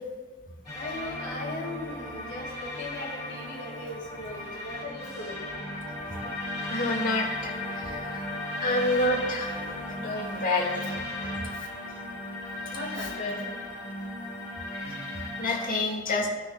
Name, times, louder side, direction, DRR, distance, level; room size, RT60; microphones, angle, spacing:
sound 1, 0.6-15.7, left 1 dB, 15° left, 2.7 m, -36 dB
voice 1, 0.7-5.6 11.5-11.7 12.6-13.5, left 2 dB, 55° left, -6 dB, 1.6 m, -38 dB
voice 2, 6.7-8.3 8.6-9.6 9.9-10.8 11.2-11.3 14.7-16.3, left 2 dB, 40° left, -1 dB, 1.6 m, -29 dB
16.5 x 6.4 x 2.2 m, 1.3 s
head